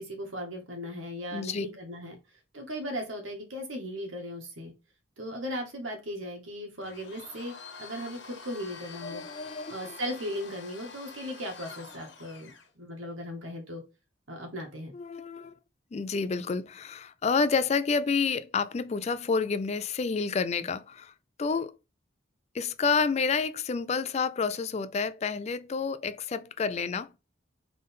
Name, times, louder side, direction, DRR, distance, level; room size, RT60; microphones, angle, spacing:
voice 1, 0.0-2.2 2.5-4.7 5.2-7.5 7.8-9.2 9.7-12.5 12.8-13.8 14.3-14.9, equal, 85° right, 1.7 m, -37 dB
voice 2, 1.3-1.7 9.0-10.0 14.9-15.5 15.9-21.1 21.4-21.8 22.5-27.1, left 5 dB, 35° left, 0.3 m, -29 dB
Domestic sounds home sounds, 6.8-12.7, left 4 dB, 70° left, 1.2 m, -47 dB
3.9 x 3.7 x 3.6 m
head